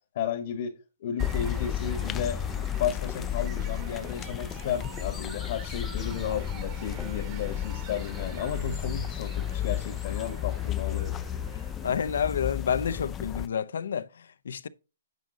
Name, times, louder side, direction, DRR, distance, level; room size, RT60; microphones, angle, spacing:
voice 1, 0.1-2.4 2.8-11.2, left 8 dB, 50° left, 1.2 m, -33 dB
sound 1, 1.2-13.5, left 10 dB, 15° left, 0.4 m, -33 dB
sound 2, 1.2-12.3, right 9 dB, 30° right, 1.3 m, -48 dB
voice 2, 11.6-14.7, left 7 dB, 75° left, 0.6 m, -30 dB
9.3 x 5.1 x 3.9 m
hypercardioid pair, 160°, 0 cm